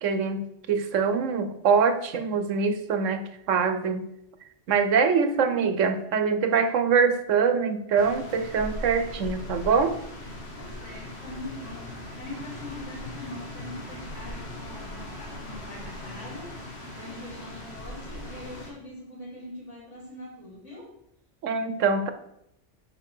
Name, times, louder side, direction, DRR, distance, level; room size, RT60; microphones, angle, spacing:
voice 1, 0.0-0.4 0.7-4.0 4.7-10.0 21.4-22.1, right 5 dB, 90° right, 9 dB, 1.2 m, -24 dB
sound 1, 8.0-18.7, left 1 dB, 60° left, 1.9 m, -39 dB
voice 2, 10.5-16.5 16.9-20.9, left 1 dB, 80° left, -9 dB, 4.4 m, -42 dB
6.1 x 5.5 x 6.5 m, 0.77 s
omnidirectional pair, 1.3 m